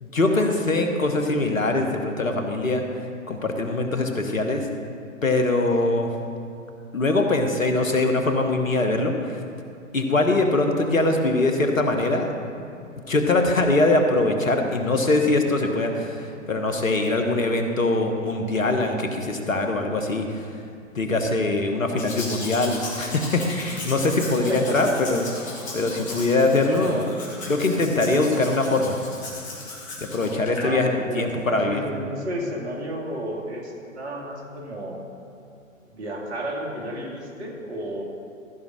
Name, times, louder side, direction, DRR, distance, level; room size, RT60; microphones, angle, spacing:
voice 1, 0.0-2.8 3.3-4.7 5.2-6.1 6.9-9.4 9.9-12.3 13.1-20.6 20.9-27.0 27.5-29.0 30.0-31.8, left 2 dB, 75° left, 4 dB, 1.4 m, -22 dB
Domestic sounds home sounds, 22.0-30.7 31.3-31.4, left 2 dB, 20° left, 2.2 m, -36 dB
voice 2, 24.5-24.9 26.8-27.1 30.6-35.0 35.9-38.0, right 1 dB, 55° right, 0 dB, 2.3 m, -32 dB
14.0 x 5.3 x 6.2 m, 2.5 s
figure-of-eight pair, 115°, 40 cm